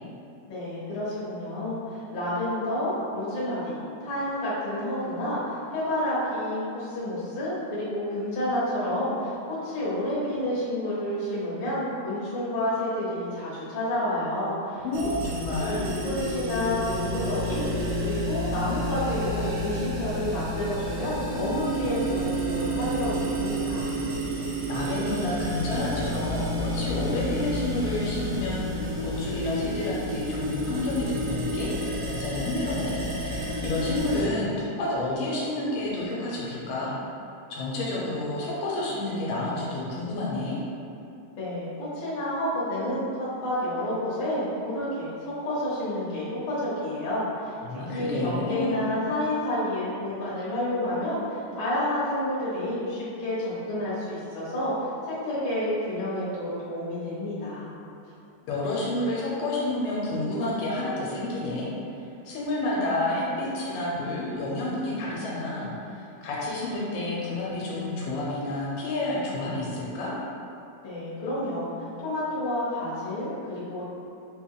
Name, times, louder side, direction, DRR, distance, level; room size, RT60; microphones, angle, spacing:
voice 1, 0.5-14.8 15.6-23.9 41.4-47.6 47.9-57.7 70.8-73.8, left 1 dB, 55° left, -9 dB, 1.6 m, -29 dB
voice 2, 14.8-15.8 24.7-36.9 37.5-40.6 47.6-48.8 58.5-62.0 62.3-70.1, left 2 dB, 85° left, -5 dB, 2.0 m, -30 dB
sound 1, 14.9-34.2, equal, 90° right, 2.0 m, -30 dB
4.6 x 2.3 x 3.6 m, 2.7 s
omnidirectional pair, 3.4 m